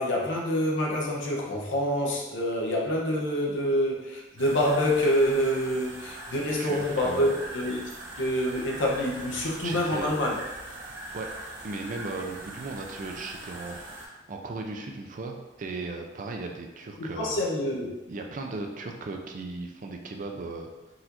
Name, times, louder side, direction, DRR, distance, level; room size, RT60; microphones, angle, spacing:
voice 1, 0.0-7.8 8.2-10.4 17.0-17.9, equal, 85° left, -3 dB, 0.8 m, -26 dB
sound 1, 4.4-14.1, right 2 dB, 70° right, 1.0 m, -41 dB
voice 2, 6.6-7.3 9.6-10.1 11.1-11.3 11.6-13.8 14.3-17.4 18.1-20.7, right 3 dB, 45° right, 3 dB, 0.4 m, -36 dB
4.0 x 2.5 x 2.9 m, 1.1 s
head